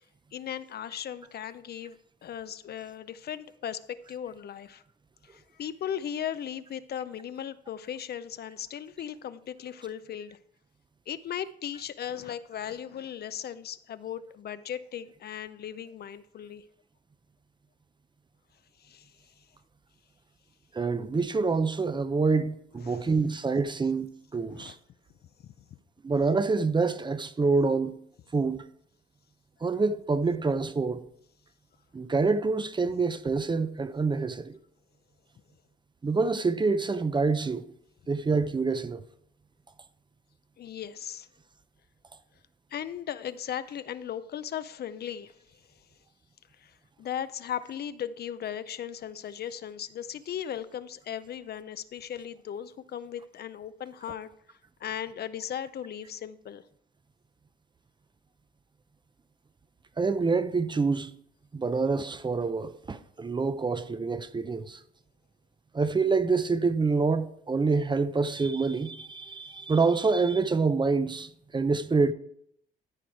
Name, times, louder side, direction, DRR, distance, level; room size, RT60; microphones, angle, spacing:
voice 1, 0.3-4.8 5.2-10.4 11.1-16.6 18.8-19.1 22.8-23.1 24.5-24.8 40.6-41.3 42.7-45.4 46.6-56.6, left 9 dB, 55° left, 0.5 m, -37 dB
voice 2, 20.7-24.7 26.0-27.9 28.3-28.6 29.6-31.1 31.9-34.6 36.0-37.6 38.1-39.0 60.0-61.1 61.5-64.8 65.7-72.1, right 4 dB, 25° right, 0.6 m, -26 dB
13.0 x 4.7 x 4.6 m
cardioid pair, 90°, 20 cm